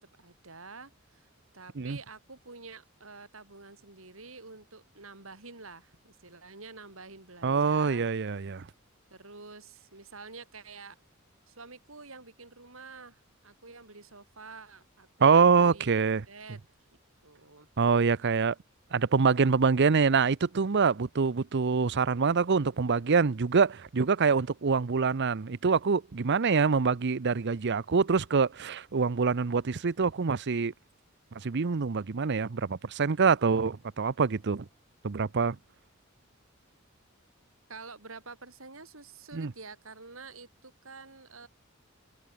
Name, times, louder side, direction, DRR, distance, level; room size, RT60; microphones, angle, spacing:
voice 1, 0.2-8.0 9.1-11.0 11.5-16.0 16.3-16.6 17.2-17.7 37.7-41.5, right 4 dB, 75° right, 4.8 m, -48 dB
voice 2, 7.4-8.6 15.2-16.2 17.8-18.5 18.9-30.7 31.4-34.6 35.0-35.6 39.3-39.5, right 5 dB, 55° right, 0.6 m, -25 dB
head